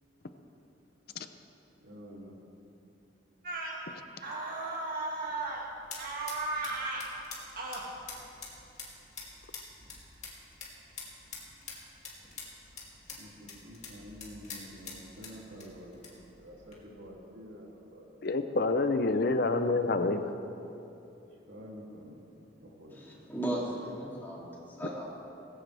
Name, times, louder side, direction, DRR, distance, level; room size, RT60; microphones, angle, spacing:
voice 1, 1.8-2.3 13.2-18.3 21.5-22.2 22.6-23.2, equal, 90° right, -3 dB, 2.8 m, -48 dB
sound 1, 3.4-3.8 4.2-5.7 6.0-7.1 7.6-7.9, right 2 dB, 50° right, 2.2 m, -35 dB
sound 2, 5.1-16.8, left 4 dB, 40° left, 2.6 m, -48 dB
voice 2, 18.2-20.3, left 3 dB, 55° left, 8 dB, 0.7 m, -27 dB
voice 3, 22.9-25.2, right 1 dB, 10° left, -5 dB, 2.9 m, -37 dB
18.5 x 16.0 x 3.4 m, 2.9 s
head